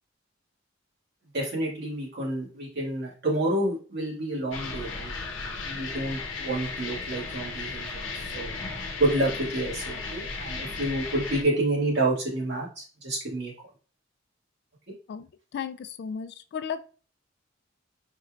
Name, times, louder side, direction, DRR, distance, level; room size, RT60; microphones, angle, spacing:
voice 1, 1.3-5.1 5.6-8.5 9.0-13.5, right 1 dB, 60° right, -5 dB, 2.0 m, -29 dB
sound 1, 4.5-11.4, left 4 dB, 70° left, 0.8 m, -35 dB
voice 2, 15.1-16.8, left 7 dB, 55° left, 11 dB, 0.3 m, -35 dB
4.1 x 3.2 x 2.4 m, 0.38 s
head